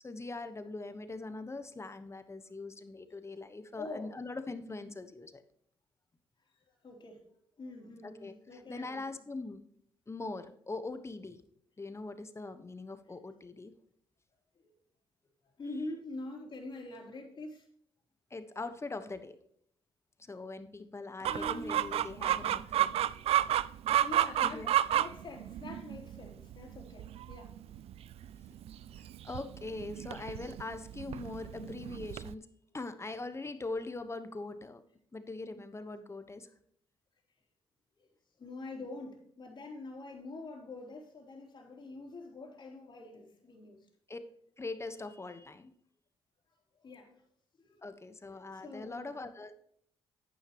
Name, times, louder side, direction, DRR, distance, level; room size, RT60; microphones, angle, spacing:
voice 1, 0.0-5.4 8.0-9.6 10.1-11.4 11.8-13.7 18.3-19.4 20.2-23.6 24.4-24.7 28.5-28.6 28.9-32.5 32.7-34.8 35.1-36.5 44.1-44.2 44.6-45.7 47.8-49.5, left 3 dB, 25° left, 1.2 m, -42 dB
voice 2, 3.8-4.2 6.5-7.3 7.6-9.2 12.7-12.8 14.6-14.7 15.6-17.7 21.3-22.0 24.0-27.6 28.1-28.4 28.7-28.9 38.0-38.1 38.4-43.9 46.7-47.1 47.6-47.9 48.5-49.2, left 2 dB, 45° left, 3.4 m, -45 dB
Chicken rooster, 21.2-32.3, right 12 dB, 70° right, 0.4 m, -32 dB
10.5 x 9.2 x 3.0 m
supercardioid pair, 65°, 10 cm